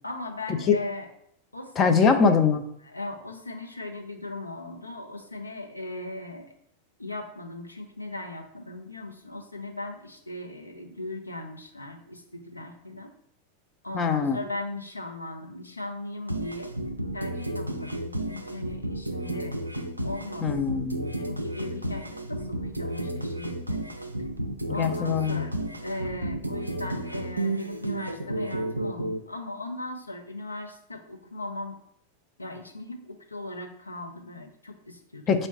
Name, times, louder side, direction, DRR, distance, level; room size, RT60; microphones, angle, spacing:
voice 1, 0.0-1.1 1.5-2.2 2.8-6.5 7.0-13.1 13.8-16.7 17.1-19.6 20.0-20.5 21.2-23.8 24.7-31.8 32.4-35.5, left 2 dB, 85° left, 3 dB, 0.5 m, -38 dB
voice 2, 1.8-2.6 13.9-14.4 20.4-21.1 24.8-25.4 35.3-35.5, left 5 dB, 25° left, 7 dB, 0.4 m, -22 dB
sound 1, 16.3-29.2, right 1 dB, 85° right, 0.3 m, -32 dB
3.7 x 2.1 x 4.1 m, 0.72 s
figure-of-eight pair, 90°, 0 cm